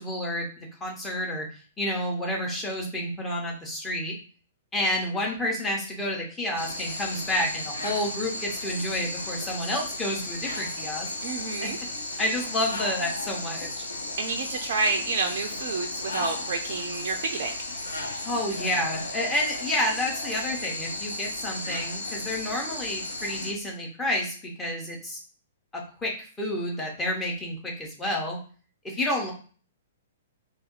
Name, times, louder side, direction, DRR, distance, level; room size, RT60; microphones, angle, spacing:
voice 1, 0.0-1.5 1.8-4.1 4.7-11.1 11.6-11.7 12.2-13.8 18.2-25.2 26.0-26.1 26.4-28.4 28.8-29.3, left 1 dB, 15° left, -1 dB, 1.0 m, -29 dB
sound 1, 6.6-23.5, left 2 dB, 75° left, 0.6 m, -34 dB
voice 2, 11.2-11.8 14.2-17.8, right 4 dB, 50° right, 3 dB, 0.4 m, -29 dB
2.8 x 2.7 x 3.8 m, 0.40 s
figure-of-eight pair, 110°, 0 cm